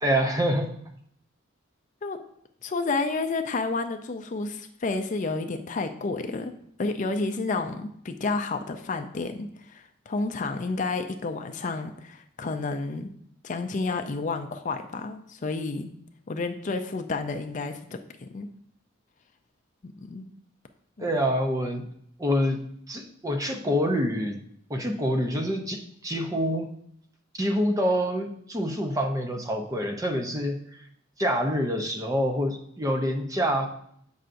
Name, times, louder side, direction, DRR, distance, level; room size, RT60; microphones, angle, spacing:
voice 1, 0.0-0.7 21.0-21.8 22.2-22.6 22.9-24.4 24.7-26.7 27.3-30.6 31.2-33.7, equal, 15° right, 4 dB, 0.6 m, -26 dB
voice 2, 2.6-6.5 6.8-13.1 13.4-15.9 16.3-18.5 19.8-20.3 21.0-21.1, left 3 dB, 40° left, 7 dB, 0.4 m, -30 dB
7.8 x 5.5 x 2.6 m, 0.68 s
head